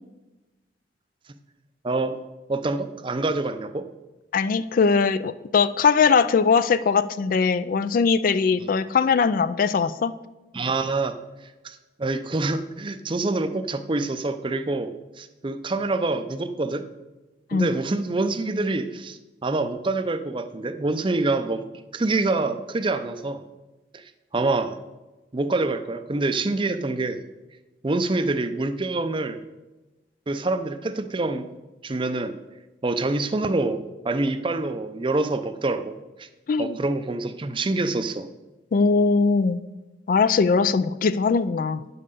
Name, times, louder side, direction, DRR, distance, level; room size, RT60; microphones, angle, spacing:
voice 1, 1.8-2.2 2.5-3.8 10.5-11.1 11.6-16.8 17.5-21.6 21.9-23.4 23.9-24.0 24.3-24.8 25.3-27.2 27.8-29.4 30.3-31.5 31.8-32.3 32.8-33.8 34.0-35.9 36.2-36.3 36.6-38.3, right 2 dB, 30° right, 10 dB, 0.5 m, -26 dB
voice 2, 4.3-10.1 17.5-17.7 36.5-36.8 38.7-39.6 40.1-41.8, left 5 dB, 50° left, 15 dB, 0.3 m, -20 dB
9.5 x 5.5 x 6.6 m, 1.1 s
head